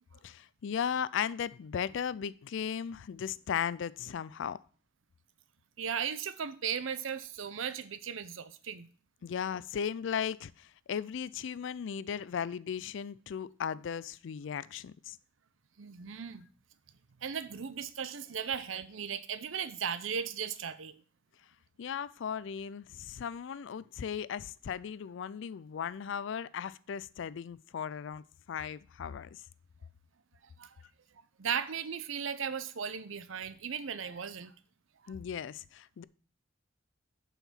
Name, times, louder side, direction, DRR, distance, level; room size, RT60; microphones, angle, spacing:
voice 1, 0.2-4.6 9.2-15.2 21.8-29.4 35.1-36.0, left 7 dB, 65° left, 0.4 m, -36 dB
voice 2, 5.8-8.9 15.8-16.5 17.2-21.0 30.6-30.7 31.4-34.5 35.0-35.1, right 7 dB, 80° right, 0.6 m, -36 dB
7.1 x 5.7 x 5.7 m
head